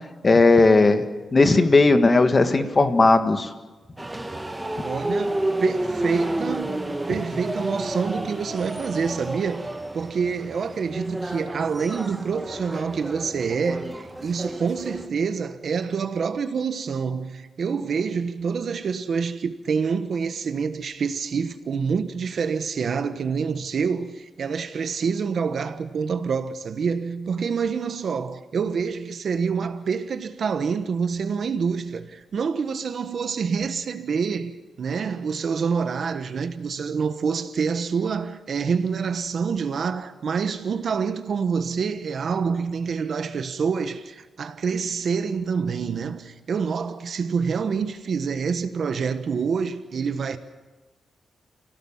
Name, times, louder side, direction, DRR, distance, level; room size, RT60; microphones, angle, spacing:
voice 1, 0.2-1.0 1.3-3.5, left 3 dB, 30° left, 1.7 m, -16 dB
sound 1, 4.0-15.1, right 1 dB, 10° right, 1.6 m, -30 dB
voice 2, 4.8-6.8 7.1-9.7 9.9-50.4, right 5 dB, 60° right, 1.2 m, -27 dB
29.5 x 17.0 x 7.3 m
wide cardioid pair, 130°, 0 cm